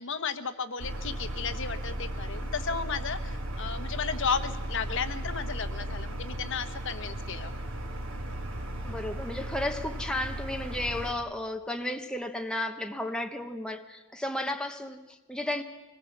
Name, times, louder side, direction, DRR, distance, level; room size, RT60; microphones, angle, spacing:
voice 1, 0.0-7.5, left 5 dB, 60° left, 1.1 m, -34 dB
sound 1, 0.8-11.1, right 1 dB, 70° right, 2.6 m, -36 dB
voice 2, 8.8-15.6, left 1 dB, 5° left, 1.2 m, -33 dB
24.5 x 19.5 x 7.3 m
head